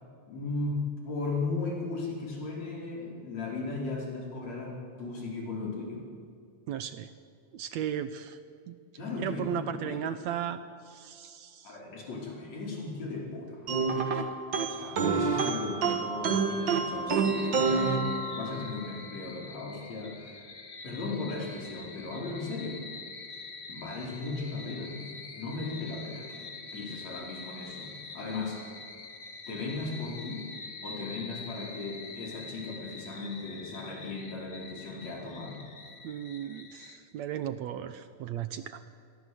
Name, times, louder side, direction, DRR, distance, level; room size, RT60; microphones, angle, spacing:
voice 1, 0.3-6.0 8.9-10.0 11.6-14.3 14.7-20.4 20.8-22.8 23.7-25.1 25.4-28.6 29.5-30.5 30.8-35.6, left 3 dB, 60° left, -2 dB, 6.0 m, -37 dB
voice 2, 6.7-7.1 7.5-8.4 8.7-8.8 9.2-11.8 13.9-14.1 36.0-38.8, right 9 dB, 70° right, 11 dB, 1.9 m, -36 dB
sound 1, 13.7-18.7, right 4 dB, 45° right, 1.8 m, -28 dB
sound 2, 17.2-37.0, left 4 dB, 30° left, 1.6 m, -45 dB
27.5 x 22.5 x 8.0 m, 2.3 s
omnidirectional pair, 3.5 m